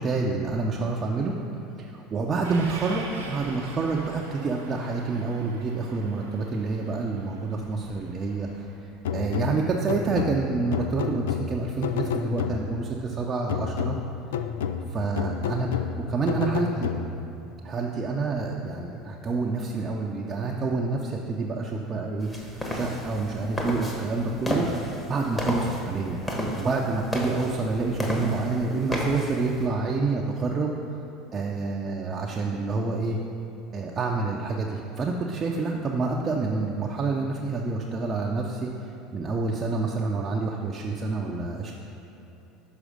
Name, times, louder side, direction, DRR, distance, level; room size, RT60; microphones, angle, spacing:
voice 1, 0.0-1.3 1.8-13.9 14.9-16.9 17.6-24.6 25.1-26.2 26.6-30.7 31.3-33.2 33.7-41.7, right 3 dB, 35° right, -1 dB, 0.6 m, -28 dB
Train, 2.4-8.7, right 3 dB, 85° right, 0.7 m, -44 dB
sound 1, 9.0-12.9 13.5-17.4, left 7 dB, 75° left, 0.3 m, -30 dB
sound 2, 22.2-29.6, left 1 dB, 15° left, 1.3 m, -32 dB
6.2 x 4.9 x 5.0 m, 2.9 s
hypercardioid pair, 75°, 0 cm